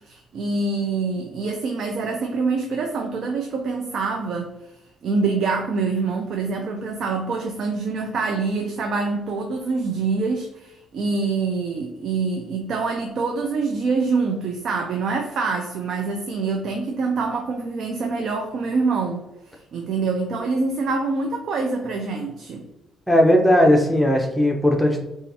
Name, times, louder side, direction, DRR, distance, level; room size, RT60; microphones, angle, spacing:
voice 1, 0.1-4.5 5.0-22.7, right 4 dB, 65° right, 3 dB, 0.4 m, -25 dB
voice 2, 23.1-25.0, left 1 dB, ahead, 1 dB, 0.7 m, -17 dB
4.0 x 2.4 x 2.7 m, 0.92 s
cardioid pair, 90°, 0 cm